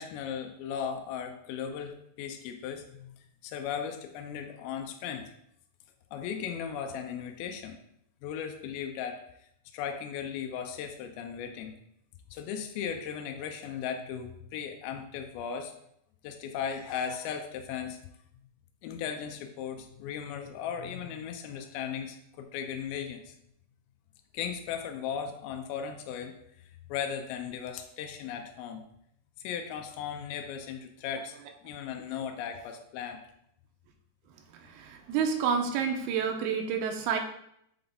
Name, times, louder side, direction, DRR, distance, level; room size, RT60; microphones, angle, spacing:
voice 1, 0.0-3.1 3.4-5.3 6.1-7.8 8.2-9.2 9.7-11.7 12.3-15.7 16.2-18.0 18.8-23.3 24.3-26.3 26.9-28.8 29.4-31.4 31.6-33.2, left 7 dB, 80° left, 5 dB, 2.5 m, -37 dB
voice 2, 34.5-37.2, right 6 dB, 85° right, 3 dB, 2.7 m, -29 dB
7.7 x 3.9 x 3.5 m, 0.73 s
omnidirectional pair, 4.5 m